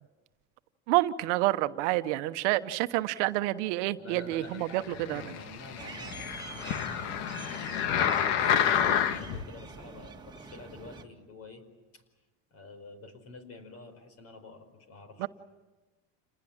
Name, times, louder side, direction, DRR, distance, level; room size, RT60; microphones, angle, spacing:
voice 1, 0.9-4.8 5.1-5.2 15.2-15.3, right 17 dB, 75° right, 11 dB, 1.1 m, -28 dB
voice 2, 4.0-11.6 11.9-12.0 12.5-15.3, left 3 dB, 45° left, 10 dB, 4.9 m, -48 dB
sound 1, 4.8-9.4 10.0-10.1, left 9 dB, 75° left, 1.7 m, -29 dB
sound 2, 5.8-11.0, right 4 dB, 10° right, 2.1 m, -45 dB
28.5 x 20.0 x 8.8 m, 1.2 s
supercardioid pair, 130°, 36 cm